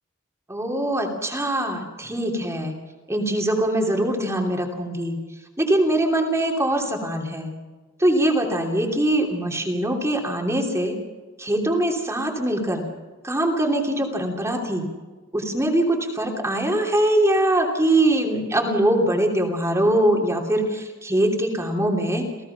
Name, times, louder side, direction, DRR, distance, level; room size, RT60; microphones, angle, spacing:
voice 1, 0.5-2.7 3.1-5.2 5.6-7.5 8.0-11.0 11.4-12.8 13.2-14.9 15.3-22.3, right 1 dB, 15° right, 1 dB, 3.0 m, -22 dB
28.5 x 16.5 x 5.8 m, 1.3 s
head